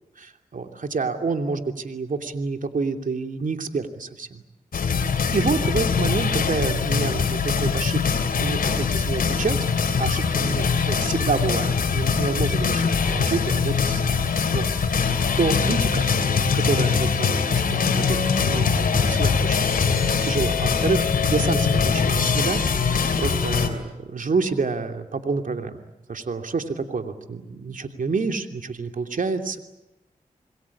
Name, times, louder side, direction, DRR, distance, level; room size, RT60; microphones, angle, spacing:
voice 1, 0.2-4.4 4.8-9.6 10.0-14.2 14.5-14.7 15.4-16.1 16.5-22.6 22.9-25.8 26.1-29.6, right 4 dB, 65° right, 6 dB, 2.9 m, -28 dB
sound 1, 4.7-23.7, left 5 dB, 85° left, 3.0 m, -22 dB
27.5 x 21.5 x 8.6 m, 0.98 s
cardioid pair, 45°, 15 cm